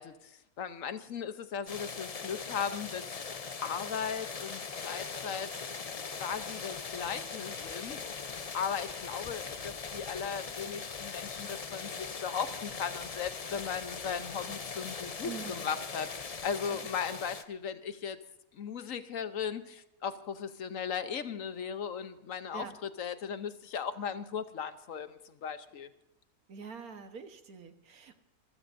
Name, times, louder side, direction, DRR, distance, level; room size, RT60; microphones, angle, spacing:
voice 1, 0.0-3.0 3.6-5.5 5.8-5.9 6.2-18.2 18.5-25.9, left 7 dB, 65° left, 11 dB, 1.3 m, -37 dB
sound 1, 1.7-17.4, left 5 dB, 40° left, 0.6 m, -40 dB
voice 2, 15.2-15.8 16.7-16.8 22.5-22.8 26.5-28.2, right 6 dB, 80° right, 8 dB, 1.8 m, -45 dB
26.5 x 15.5 x 2.7 m, 0.83 s
omnidirectional pair, 1.5 m